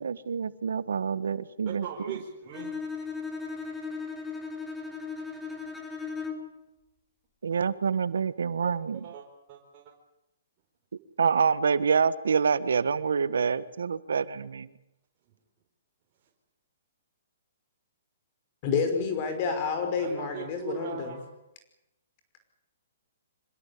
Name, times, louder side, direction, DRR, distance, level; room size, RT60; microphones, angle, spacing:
voice 1, 0.0-2.1 7.4-9.0 11.2-14.7, right 6 dB, 80° right, 15 dB, 1.5 m, -27 dB
voice 2, 1.6-2.7 8.6-9.9 20.0-21.2, right 7 dB, 35° right, -2 dB, 4.6 m, -40 dB
Bowed string instrument, 2.5-6.6, left 4 dB, 5° left, 3.6 m, -37 dB
voice 3, 18.6-21.2, left 5 dB, 40° left, 6 dB, 5.7 m, -29 dB
26.0 x 18.0 x 8.6 m, 0.87 s
hypercardioid pair, 140°, 0 cm